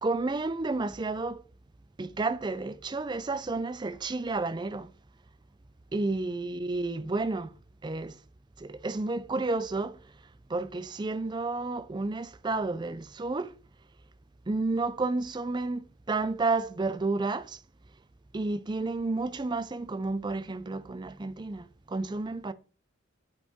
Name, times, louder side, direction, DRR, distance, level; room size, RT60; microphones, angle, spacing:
voice 1, 0.0-1.4 2.0-4.9 5.9-7.5 7.8-8.2 8.6-10.0 10.5-13.5 14.5-17.6 18.3-22.5, right 3 dB, 20° right, 0.4 m, -31 dB
9.1 x 5.4 x 3.6 m
head